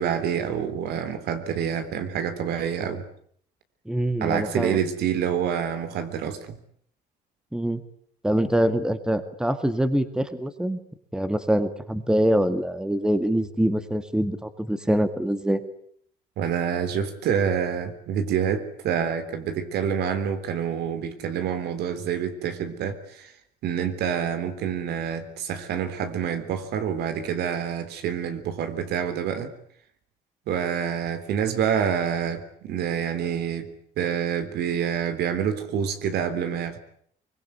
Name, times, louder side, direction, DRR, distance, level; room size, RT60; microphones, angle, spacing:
voice 1, 0.0-3.1 4.2-6.6 16.4-23.3 23.6-29.5 30.5-33.7 34.0-36.8, right 8 dB, 75° right, 9 dB, 3.6 m, -27 dB
voice 2, 3.9-4.8 7.5-7.8 8.2-10.8 11.1-15.6, equal, 5° right, 10 dB, 2.0 m, -24 dB
24.0 x 21.0 x 9.5 m, 0.64 s
cardioid pair, 110°, 17 cm